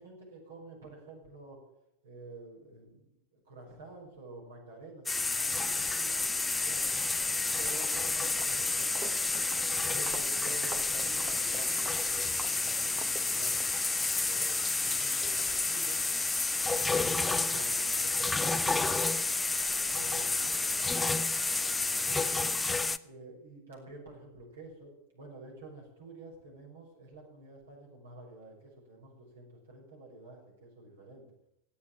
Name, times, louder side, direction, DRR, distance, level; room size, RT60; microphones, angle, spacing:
voice 1, 0.0-1.6 2.0-6.9 7.6-9.3 9.8-13.7 14.1-16.0 16.5-19.2 19.7-22.5 23.0-31.2, right 2 dB, 65° right, -1 dB, 6.6 m, -50 dB
sound 1, 5.1-23.0, left 3 dB, 10° left, 0.6 m, -30 dB
Walk footsteps, 7.1-7.4 7.7-13.7, right 6 dB, 25° right, 1.1 m, -47 dB
16.5 x 8.8 x 9.1 m, 0.86 s
figure-of-eight pair, 90°, 0 cm